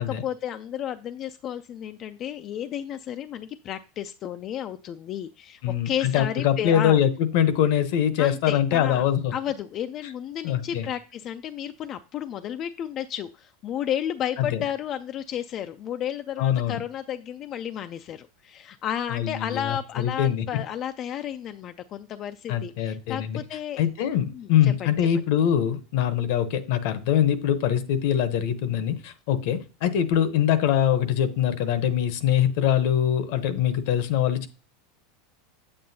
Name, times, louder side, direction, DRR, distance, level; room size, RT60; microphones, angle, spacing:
voice 1, 0.0-7.0 8.2-9.0 9.3-23.8 24.3-24.9, left 10 dB, 35° left, 9 dB, 0.3 m, -32 dB
voice 2, 5.6-9.3 10.4-10.9 14.4-14.6 16.4-16.8 19.1-20.6 22.5-23.4 23.8-34.5, left 10 dB, 60° left, 12 dB, 0.8 m, -23 dB
8.4 x 7.7 x 2.7 m, 0.34 s
supercardioid pair, 145°, 0 cm